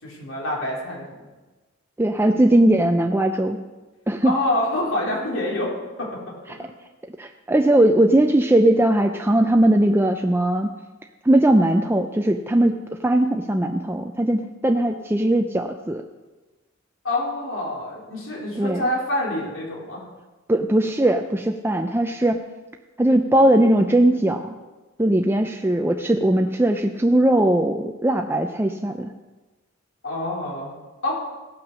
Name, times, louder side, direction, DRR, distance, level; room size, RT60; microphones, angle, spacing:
voice 1, 0.0-1.2 4.2-6.2 6.6-6.7 17.0-20.0 30.0-30.8 31.0-31.2, left 1 dB, 75° left, -4 dB, 3.9 m, -26 dB
voice 2, 2.0-3.6 4.1-4.3 7.2-10.7 11.2-12.8 13.0-16.0 18.6-18.8 20.5-22.4 23.0-24.5 25.0-29.1, right 1 dB, 10° right, 4 dB, 0.5 m, -19 dB
17.0 x 5.9 x 6.2 m, 1.2 s
head